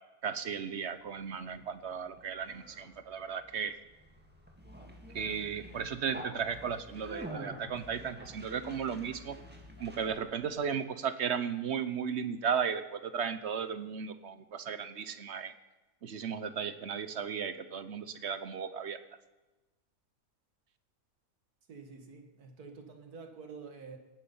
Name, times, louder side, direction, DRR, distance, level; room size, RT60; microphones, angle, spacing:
voice 1, 0.2-3.8 5.1-9.4 9.8-15.5 16.0-19.0, right 7 dB, 55° right, 12 dB, 0.9 m, -35 dB
Conversation, 1.0-10.5, equal, 5° right, 1.8 m, -48 dB
voice 2, 21.7-24.0, right 4 dB, 80° right, 5 dB, 2.1 m, -48 dB
18.5 x 9.4 x 5.5 m, 1.1 s
omnidirectional pair, 1.6 m